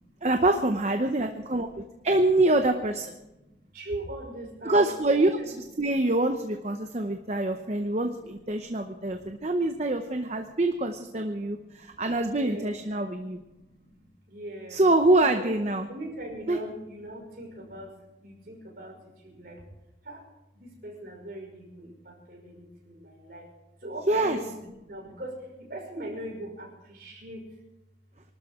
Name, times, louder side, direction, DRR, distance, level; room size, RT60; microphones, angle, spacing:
voice 1, 0.2-3.1 4.6-5.3 5.8-13.4 14.7-15.9 16.5-16.6 24.1-24.4, right 2 dB, 40° right, 6 dB, 0.8 m, -25 dB
voice 2, 1.0-2.1 3.2-6.0 6.5-10.6 11.0-14.8 15.2-19.6 20.0-20.3 20.5-23.5 23.8-27.6, right 1 dB, 55° right, -1 dB, 5.7 m, -42 dB
24.5 x 12.5 x 3.7 m, 0.96 s
head